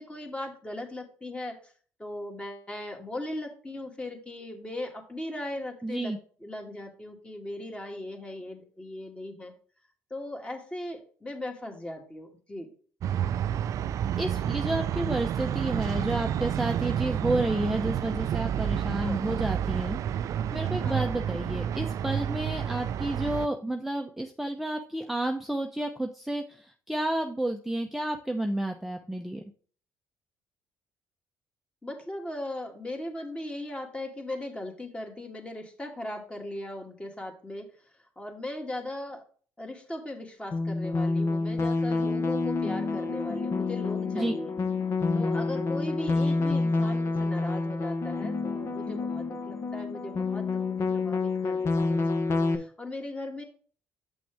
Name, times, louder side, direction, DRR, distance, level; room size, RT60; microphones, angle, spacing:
voice 1, 0.0-1.7 2.0-6.1 6.4-9.5 10.1-12.7 19.0-19.3 20.8-21.2 31.8-37.8 38.2-39.2 39.6-44.5 45.1-53.4, left 1 dB, 15° left, 2 dB, 2.1 m, -38 dB
voice 2, 5.8-6.2 14.2-20.0 20.5-29.4 44.1-44.3, right 1 dB, 5° right, 4 dB, 0.7 m, -31 dB
sound 1, 13.0-23.5, right 9 dB, 60° right, 0.4 m, -29 dB
sound 2, 40.5-52.6, left 3 dB, 45° left, 1.2 m, -28 dB
7.3 x 6.0 x 3.4 m, 0.42 s
supercardioid pair, 75°, 6 cm